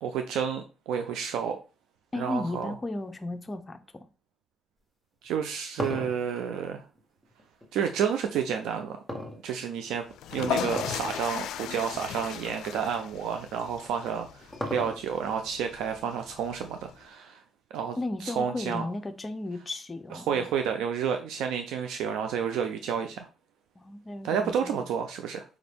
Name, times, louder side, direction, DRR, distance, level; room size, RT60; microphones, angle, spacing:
voice 1, 0.0-1.6 2.2-2.7 5.2-6.8 7.7-9.0 9.4-17.4 17.7-18.0 18.2-18.9 20.1-23.3 24.2-25.4, right 7 dB, 90° right, 0.4 m, -30 dB
voice 2, 2.1-4.0 18.0-20.5 23.8-24.8, left 2 dB, 25° left, 0.5 m, -35 dB
sound 1, 5.2-7.7 9.1-10.0 10.7-11.1 11.5-11.6 12.3-12.4 13.8-15.3, left 1 dB, 5° left, 1.2 m, -36 dB
sound 2, 10.1-16.9, left 8 dB, 85° left, 0.3 m, -37 dB
4.8 x 2.5 x 3.4 m
cardioid pair, 90°, 0 cm